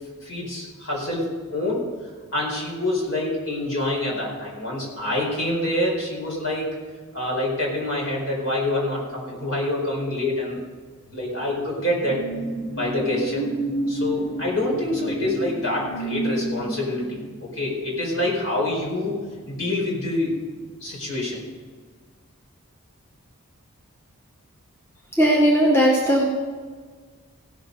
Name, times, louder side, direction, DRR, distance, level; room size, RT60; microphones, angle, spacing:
voice 1, 0.2-1.9 2.3-6.7 7.1-10.6 11.1-12.2 12.8-13.5 13.9-19.2 19.5-20.4 20.8-21.4, left 1 dB, 60° left, -3 dB, 4.7 m, -26 dB
sound 1, 11.1-20.1 20.4-20.7, right 2 dB, 90° left, 4.7 m, -31 dB
voice 2, 25.1-26.3, equal, 10° left, -4 dB, 1.6 m, -17 dB
16.5 x 7.5 x 5.3 m, 1.5 s
head